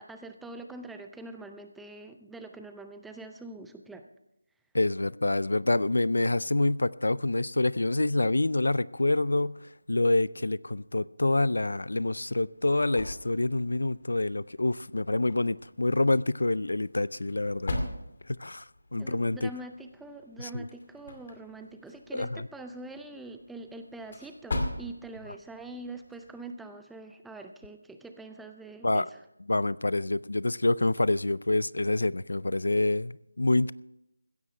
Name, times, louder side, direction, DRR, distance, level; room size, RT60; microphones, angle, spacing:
voice 1, 0.0-4.1 19.0-29.2, right 2 dB, ahead, 0.5 m, -44 dB
voice 2, 4.7-9.6 9.9-17.8 18.3-18.6 18.9-19.5 20.4-20.7 22.1-22.5 28.8-29.1 29.5-33.7, left 2 dB, 80° left, 0.4 m, -27 dB
sound 1, 12.1-26.6, left 1 dB, 45° left, 2.3 m, -41 dB
16.0 x 14.0 x 3.3 m
figure-of-eight pair, 170°, 0 cm